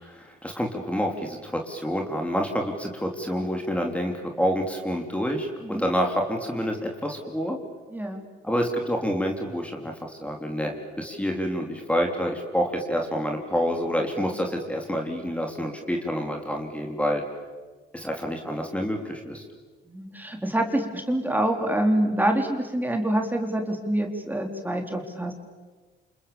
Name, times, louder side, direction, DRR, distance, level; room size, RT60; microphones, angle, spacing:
voice 1, 0.0-7.6 8.4-17.2 17.9-19.4, equal, 5° left, 2 dB, 3.6 m, -28 dB
voice 2, 7.9-8.2 19.9-25.3, right 1 dB, 10° right, 3 dB, 3.8 m, -26 dB
29.0 x 28.0 x 7.2 m, 1.3 s
cardioid pair, 90°, 20 cm